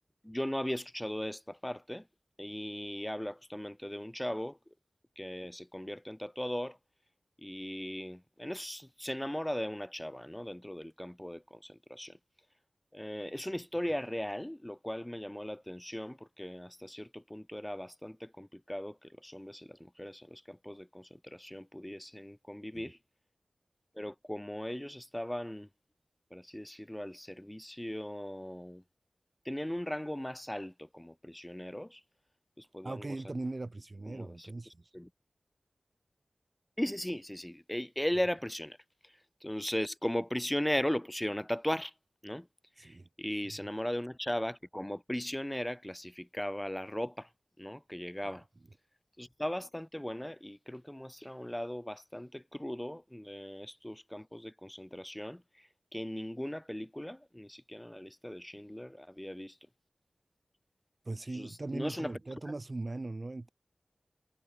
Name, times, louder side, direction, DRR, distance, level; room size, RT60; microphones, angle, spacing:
voice 1, 0.2-2.1 2.4-4.6 5.2-6.8 7.4-12.2 12.9-23.0 23.9-25.7 26.3-28.8 29.4-32.0 32.6-33.2 34.1-35.1 36.8-38.8 39.0-41.9 42.2-42.5 42.8-47.3 47.6-48.4 49.2-59.6 61.3-62.2, left 1 dB, 10° left, 1.2 m, -38 dB
voice 2, 32.8-34.7 42.8-43.1 61.1-63.5, right 2 dB, 40° right, 0.6 m, -39 dB
wide cardioid pair, 90°, 0 cm